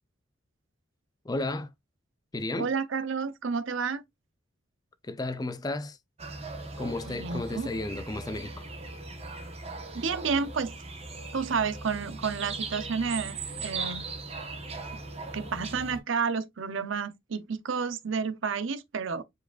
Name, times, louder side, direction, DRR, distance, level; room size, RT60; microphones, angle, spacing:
voice 1, 1.2-1.7 2.3-2.7 5.0-6.0 6.8-8.7, left 2 dB, 20° left, 0.4 m, -33 dB
voice 2, 2.6-4.0 7.0-7.7 9.9-10.7 11.3-14.0 15.3-19.2, right 5 dB, 70° right, 0.6 m, -30 dB
sound 1, 6.2-16.0, right 3 dB, 30° right, 1.1 m, -39 dB
4.8 x 4.5 x 2.4 m
head